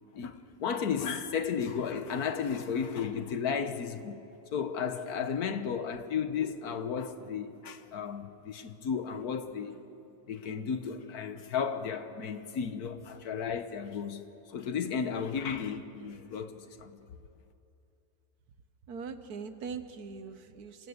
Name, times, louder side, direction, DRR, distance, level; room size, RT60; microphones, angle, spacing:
voice 1, 0.1-4.2 4.5-9.8 10.3-14.2 14.5-16.9, left 6 dB, 80° left, 1.6 m, -34 dB
voice 2, 18.9-20.9, right 5 dB, 80° right, 1.6 m, -41 dB
26.5 x 16.5 x 8.0 m
omnidirectional pair, 1.6 m